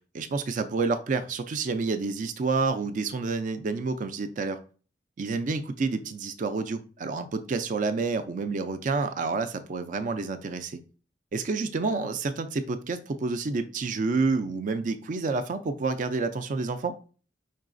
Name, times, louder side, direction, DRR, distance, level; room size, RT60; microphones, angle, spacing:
voice 1, 0.1-4.6 5.2-10.8 11.3-17.0, right 4 dB, 45° right, 10 dB, 0.4 m, -29 dB
5.5 x 3.9 x 2.5 m, 0.37 s
head